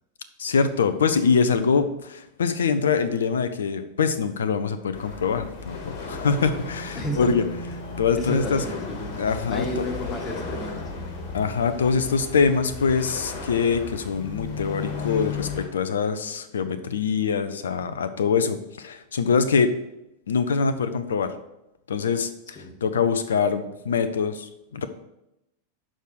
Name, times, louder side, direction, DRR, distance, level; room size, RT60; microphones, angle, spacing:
voice 1, 0.4-7.4 8.0-8.6 9.2-9.9 11.3-19.7 20.3-21.3 21.9-24.9, left 5 dB, 65° left, 11 dB, 0.6 m, -24 dB
sound 1, 4.9-15.7, left 4 dB, 50° left, 1.5 m, -35 dB
voice 2, 6.9-7.5 8.2-9.1 9.5-10.8 22.5-22.7, left 1 dB, 20° left, 2 dB, 1.6 m, -32 dB
6.6 x 4.9 x 6.3 m, 0.87 s
figure-of-eight pair, 90°, 0 cm